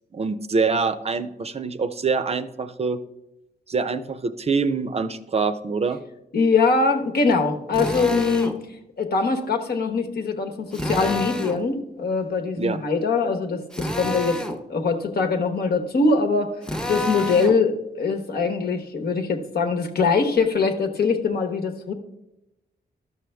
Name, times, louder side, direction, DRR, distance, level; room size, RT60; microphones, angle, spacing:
voice 1, 0.1-3.0 3.7-6.0 12.6-12.8, right 4 dB, 40° right, 11 dB, 0.5 m, -25 dB
voice 2, 6.3-8.5 9.0-14.4 14.7-16.5 16.9-21.9, left 4 dB, 65° left, 4 dB, 1.1 m, -22 dB
Drill, 7.7-8.6 10.7-11.6 13.7-14.6 16.6-17.6, left 1 dB, 5° left, 0.7 m, -28 dB
12.0 x 6.3 x 3.4 m, 0.92 s
cardioid pair, 100°, 17 cm